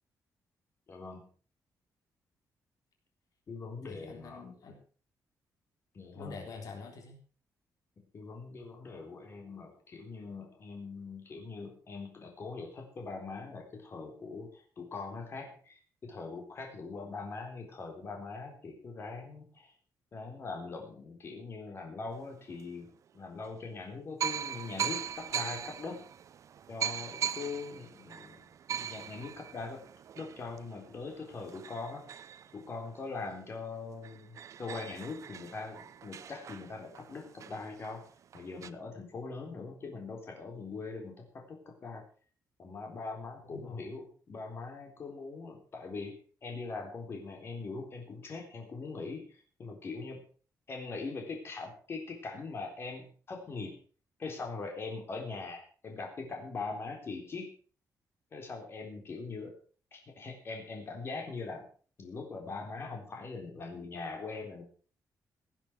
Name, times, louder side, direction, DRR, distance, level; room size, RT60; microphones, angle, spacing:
voice 1, 0.9-1.3 3.5-4.4 5.9-6.4 8.1-19.7 20.1-22.9 23.1-26.0 26.7-29.8 30.2-32.0 32.5-38.0 38.3-42.0 42.6-46.1 46.4-50.2 50.7-53.7 54.2-57.5 58.3-59.5 59.9-61.7 62.0-64.6, left 4 dB, 40° left, 2 dB, 3.9 m, -42 dB
voice 2, 3.9-4.8 6.1-7.2 43.4-43.9, left 4 dB, 65° left, 3 dB, 3.8 m, -46 dB
sound 1, 22.5-22.6 23.4-23.5 24.2-33.4 33.7-33.8 34.0-38.7, right 8 dB, 55° right, 0.7 m, -40 dB
17.0 x 8.8 x 6.3 m, 0.41 s
wide cardioid pair, 160°, 7 cm